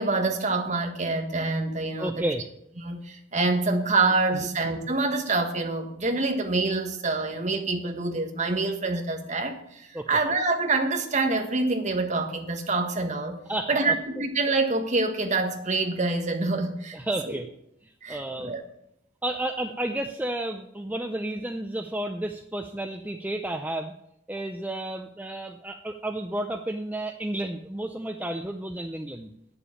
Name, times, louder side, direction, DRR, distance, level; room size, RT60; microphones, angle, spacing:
voice 1, 0.0-2.2 2.8-13.4 13.7-17.0 17.3-17.4 18.0-18.6, right 3 dB, 35° right, 4 dB, 1.4 m, -26 dB
voice 2, 2.0-2.4 4.3-4.5 9.9-10.2 13.5-14.0 16.9-17.5 17.8-18.5 19.2-23.9 24.3-29.3, right 1 dB, 10° right, 4 dB, 0.5 m, -32 dB
9.0 x 7.0 x 8.7 m, 0.78 s
head